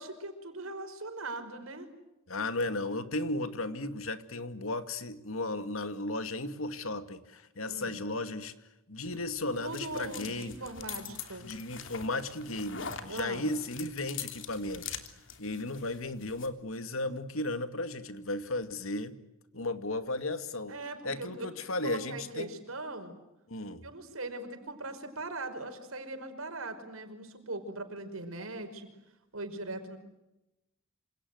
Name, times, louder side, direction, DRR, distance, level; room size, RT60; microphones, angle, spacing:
voice 1, 0.0-1.9 7.7-8.0 9.6-11.5 13.1-13.4 20.7-23.1 23.8-28.9 29.3-30.0, right 2 dB, 85° right, 7 dB, 5.4 m, -40 dB
voice 2, 2.3-8.5 8.9-10.6 11.1-15.0 15.4-19.2 19.5-20.8 21.0-22.5 23.5-23.8, left 2 dB, 80° left, 10 dB, 2.3 m, -35 dB
sound 1, 9.1-16.5, left 7 dB, 60° left, 3.1 m, -44 dB
28.0 x 27.0 x 8.0 m, 0.95 s
head